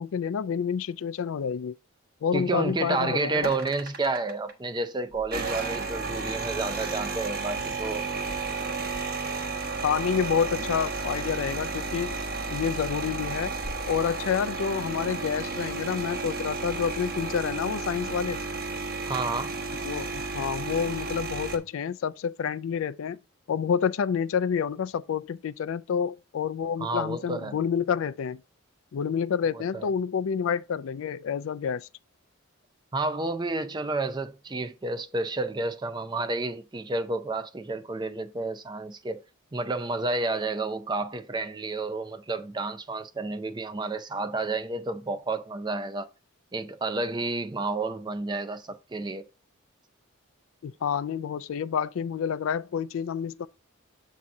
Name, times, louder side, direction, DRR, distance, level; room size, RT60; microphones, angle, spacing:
voice 1, 0.0-1.7 2.2-3.5 9.8-12.2 12.5-13.5 13.9-18.4 19.8-23.2 23.5-28.4 28.9-31.9 50.6-53.5, left 7 dB, 65° left, 0.3 m, -28 dB
voice 2, 2.3-8.1 19.0-19.5 26.8-27.6 29.5-29.9 32.9-39.2 39.5-46.1 46.5-49.3, right 3 dB, 20° right, 0.4 m, -30 dB
sound 1, 3.4-4.5 5.2-21.6, right 3 dB, 45° right, 1.0 m, -33 dB
7.5 x 2.8 x 5.8 m
head